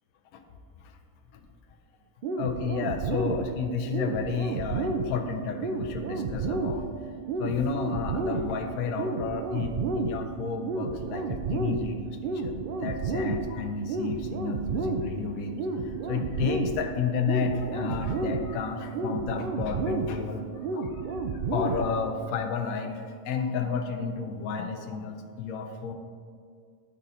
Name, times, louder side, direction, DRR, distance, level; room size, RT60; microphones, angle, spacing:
sound 1, 2.2-22.2, right 4 dB, 90° right, 0.4 m, -32 dB
voice 1, 2.4-6.9 7.4-25.9, left 5 dB, 85° left, 4 dB, 1.0 m, -32 dB
10.0 x 4.1 x 3.8 m, 2.1 s
omnidirectional pair, 1.5 m